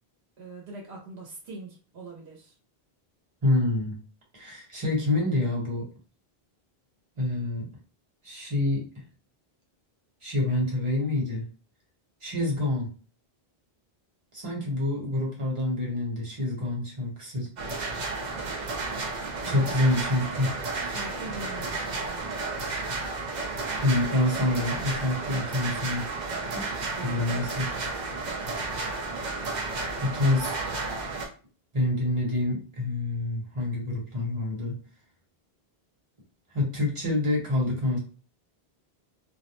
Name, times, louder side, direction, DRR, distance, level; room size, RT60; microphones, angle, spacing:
voice 1, 0.4-2.5 19.4-19.8 20.8-22.2 26.7-27.4, right 3 dB, 85° right, 0 dB, 1.0 m, -43 dB
voice 2, 3.4-4.0 4.3-5.9 7.2-7.7 8.2-8.9 10.2-11.4 12.2-12.9 14.3-17.5 19.4-20.5 23.8-26.1 26.5-26.7 27.0-27.7 30.0-30.5 31.7-34.8 36.5-38.0, left 2 dB, 30° right, -2 dB, 1.0 m, -27 dB
sound 1, 17.6-31.3, right 3 dB, 50° right, 0.6 m, -32 dB
2.4 x 2.0 x 2.9 m, 0.37 s
omnidirectional pair, 1.0 m